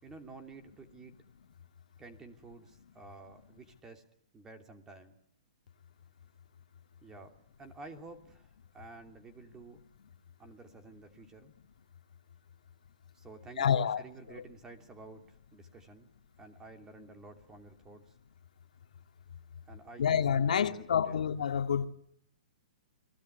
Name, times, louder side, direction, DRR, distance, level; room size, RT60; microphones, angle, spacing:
voice 1, 0.0-1.2 2.0-4.0 4.3-5.2 7.0-9.8 10.4-11.5 13.1-16.1 16.4-18.1 19.7-21.2, right 3 dB, 15° right, 2.9 m, -51 dB
voice 2, 13.6-14.0 20.0-21.9, left 8 dB, 75° left, 2.2 m, -28 dB
29.0 x 20.5 x 8.3 m
hypercardioid pair, 155°, 4 cm